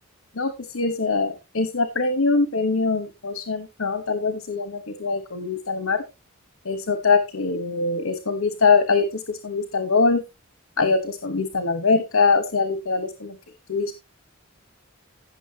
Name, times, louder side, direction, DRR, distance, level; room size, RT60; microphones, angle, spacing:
voice 1, 0.3-6.0 6.6-10.2 10.8-13.4 13.7-13.9, left 4 dB, 75° left, 10 dB, 1.1 m, -23 dB
15.5 x 6.3 x 2.8 m, 0.23 s
head